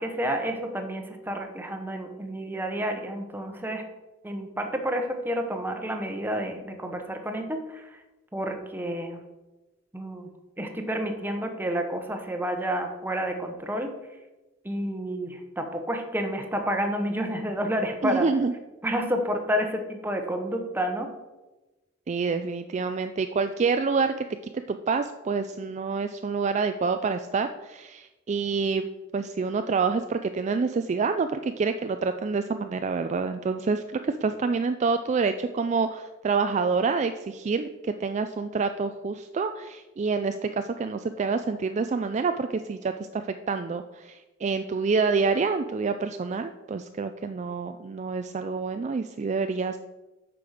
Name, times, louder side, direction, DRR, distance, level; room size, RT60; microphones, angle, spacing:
voice 1, 0.0-3.8 4.2-8.0 8.3-9.2 9.9-13.9 14.6-18.3 18.8-21.1, equal, 10° right, 5 dB, 1.0 m, -30 dB
voice 2, 18.0-18.5 22.1-24.1 24.4-28.9 29.1-49.8, right 4 dB, 35° right, 8 dB, 0.3 m, -27 dB
8.6 x 6.0 x 4.9 m, 1.1 s
head